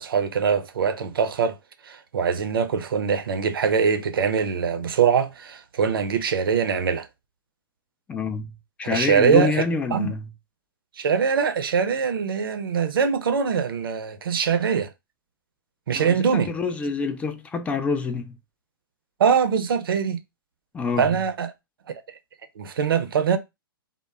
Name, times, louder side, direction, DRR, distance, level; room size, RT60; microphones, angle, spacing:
voice 1, 0.0-1.6 1.9-7.1 8.9-9.6 9.9-10.1 11.0-14.9 15.9-16.5 19.2-20.2 21.0-21.5 22.6-23.4, right 6 dB, 75° right, 0.5 m, -22 dB
voice 2, 8.1-8.5 8.8-10.3 15.9-18.4 20.7-21.1, left 4 dB, 10° left, 0.3 m, -27 dB
2.1 x 2.0 x 3.3 m
hypercardioid pair, 120°, 12 cm